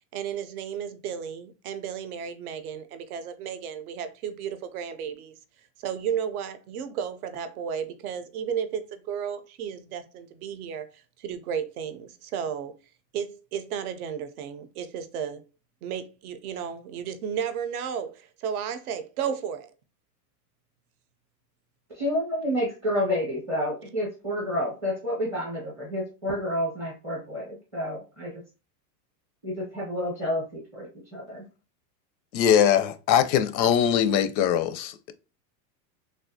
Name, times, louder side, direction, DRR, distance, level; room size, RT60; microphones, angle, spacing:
voice 1, 0.1-5.4 5.8-10.9 11.2-12.8 13.1-15.4 15.8-19.7, right 8 dB, 60° right, 0.5 m, -33 dB
voice 2, 21.9-28.3 29.4-30.9 31.1-31.4, equal, 5° right, 0.5 m, -29 dB
voice 3, 32.3-35.1, left 9 dB, 90° left, 0.6 m, -22 dB
3.4 x 2.4 x 2.6 m
supercardioid pair, 175°, 50 cm